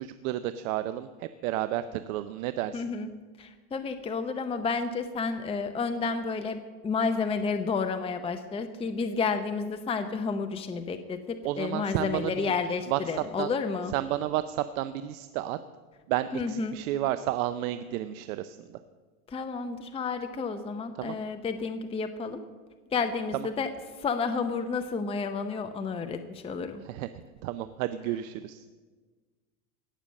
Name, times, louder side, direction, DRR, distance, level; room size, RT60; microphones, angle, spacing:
voice 1, 0.0-2.8 11.4-12.5 12.9-13.5 13.9-15.6 16.1-18.8 21.0-21.1 23.3-23.5 26.8-27.1 27.4-28.6, right 13 dB, 70° right, 12 dB, 0.7 m, -31 dB
voice 2, 2.7-3.1 3.4-13.9 16.3-16.8 19.3-22.4 22.9-23.7 24.0-26.8, left 4 dB, 15° left, 7 dB, 0.7 m, -31 dB
17.5 x 6.9 x 7.4 m, 1.4 s
supercardioid pair, 120°, 43 cm